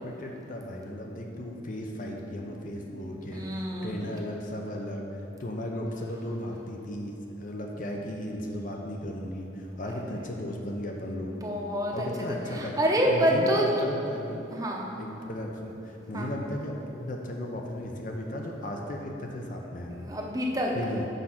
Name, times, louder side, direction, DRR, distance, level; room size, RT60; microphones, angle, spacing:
voice 1, 0.0-11.4 11.9-12.8 13.1-14.5 15.0-20.0 20.7-21.1, left 1 dB, 45° left, 1 dB, 0.6 m, -35 dB
voice 2, 3.3-4.1 11.3-11.9 12.5-13.6 14.5-14.9 16.1-16.3 19.9-20.8, equal, 20° right, -1 dB, 0.8 m, -27 dB
6.5 x 4.8 x 5.8 m, 2.9 s
head